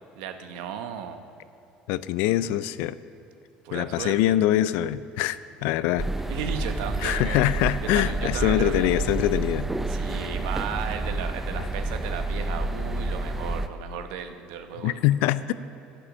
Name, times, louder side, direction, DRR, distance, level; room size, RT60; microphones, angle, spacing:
voice 1, 0.2-1.2 3.6-4.4 6.3-7.5 7.8-9.0 9.9-15.0, right 8 dB, 85° right, 8 dB, 0.8 m, -35 dB
voice 2, 1.9-3.0 3.7-6.1 7.0-9.7 11.6-11.7 14.8-15.5, left 14 dB, 80° left, 16 dB, 0.4 m, -24 dB
sound 1, 6.0-13.7, right 2 dB, 10° right, 0.5 m, -29 dB
10.0 x 9.8 x 6.2 m, 2.8 s
cardioid pair, 115°, 3 cm